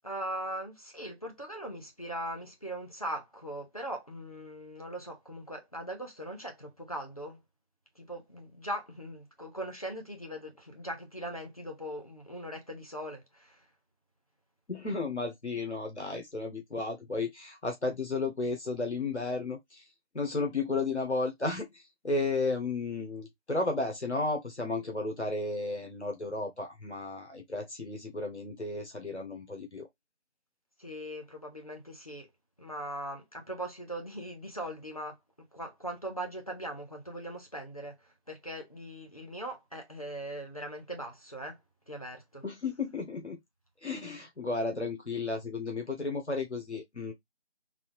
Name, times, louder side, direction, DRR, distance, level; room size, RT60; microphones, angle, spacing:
voice 1, 0.0-7.4 8.0-13.7 30.8-32.3 32.6-35.2 35.5-41.6 41.9-42.4, right 1 dB, 35° left, 1.0 m, -40 dB
voice 2, 14.7-19.9 20.1-29.9 42.4-43.4 43.8-47.1, left 3 dB, 85° left, 1.3 m, -33 dB
4.0 x 2.6 x 3.0 m
figure-of-eight pair, 175°, 33 cm